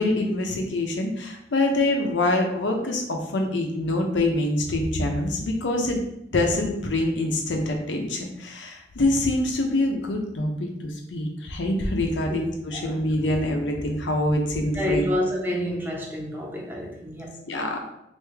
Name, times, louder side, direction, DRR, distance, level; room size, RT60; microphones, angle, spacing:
voice 1, 0.0-6.0 6.3-15.1 17.5-17.9, left 1 dB, 90° left, 3 dB, 0.6 m, -25 dB
voice 2, 14.7-17.4, left 1 dB, 10° right, -1 dB, 0.6 m, -28 dB
3.4 x 2.6 x 3.2 m, 0.79 s
head